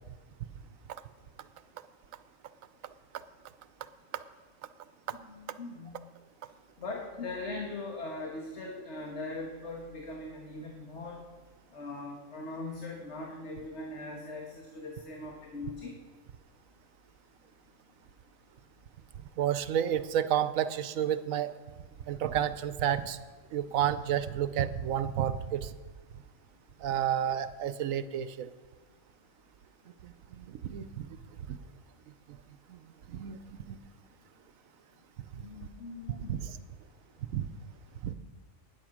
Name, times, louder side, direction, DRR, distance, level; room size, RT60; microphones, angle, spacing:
voice 1, 5.3-5.9 6.8-11.2 11.7-15.9 35.4-36.4, left 2 dB, 60° left, 0 dB, 1.8 m, -40 dB
voice 2, 19.4-21.5 22.1-23.2 23.5-25.7 26.8-28.5 30.0-31.2 31.5-31.6 32.7-32.8 33.1-33.8 36.1-36.6 37.3-37.4 38.0-38.1, right 10 dB, 80° right, 13 dB, 1.1 m, -31 dB
12.5 x 9.5 x 6.0 m, 1.3 s
omnidirectional pair, 1.4 m